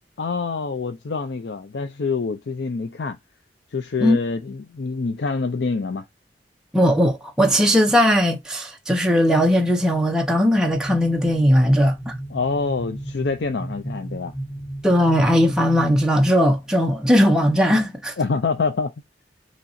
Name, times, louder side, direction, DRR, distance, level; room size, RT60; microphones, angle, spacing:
voice 1, 0.2-3.2 3.7-6.0 12.3-14.3 18.2-18.9, left 4 dB, 75° left, 0.5 m, -26 dB
voice 2, 6.7-12.1 14.8-18.1, equal, 5° right, 0.6 m, -18 dB
sound 1, 10.7-16.0, right 1 dB, 50° left, 1.7 m, -34 dB
5.7 x 3.0 x 2.6 m
head